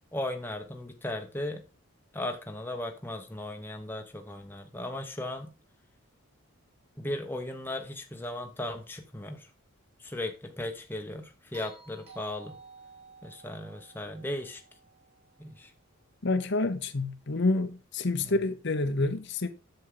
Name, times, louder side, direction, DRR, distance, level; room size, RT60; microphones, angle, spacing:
voice 1, 0.1-1.6 2.1-5.5 7.0-9.5 10.0-12.6 13.2-14.6 15.4-15.7 18.2-18.4, left 1 dB, 10° left, 0.9 m, -37 dB
sound 1, 11.5-15.8 18.0-18.1, right 4 dB, 30° right, 3.1 m, -53 dB
voice 2, 16.2-19.5, left 2 dB, 50° left, 0.8 m, -28 dB
7.9 x 7.1 x 3.8 m
head